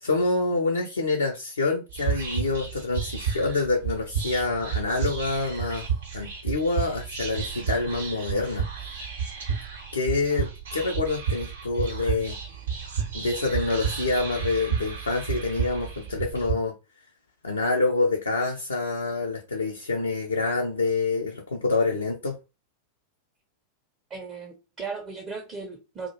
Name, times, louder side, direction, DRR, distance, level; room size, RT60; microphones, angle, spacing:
voice 1, 0.0-5.9 6.1-8.6 9.9-12.4 13.1-16.7 17.4-22.4, left 3 dB, 75° left, 0.4 m, -26 dB
Whispering, 1.9-16.5, right 7 dB, 65° right, 0.7 m, -31 dB
voice 2, 24.1-26.1, right 4 dB, 30° right, 0.5 m, -36 dB
2.2 x 2.0 x 2.8 m
figure-of-eight pair, 90°, 0 cm